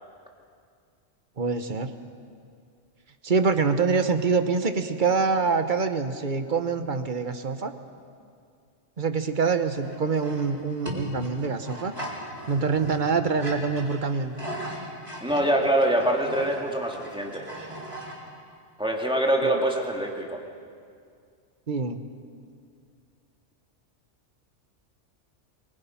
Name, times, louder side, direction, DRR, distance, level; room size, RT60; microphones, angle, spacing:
voice 1, 1.4-1.9 3.2-7.7 9.0-11.9 12.5-14.4 19.4-19.6 21.7-22.0, right 5 dB, 45° right, 8 dB, 1.1 m, -25 dB
sound 1, 9.7-18.2, equal, 25° right, 4.1 m, -38 dB
voice 2, 15.2-17.5 18.8-20.4, right 1 dB, 5° right, 0 dB, 2.2 m, -24 dB
23.5 x 22.5 x 5.8 m, 2.3 s
omnidirectional pair, 1.2 m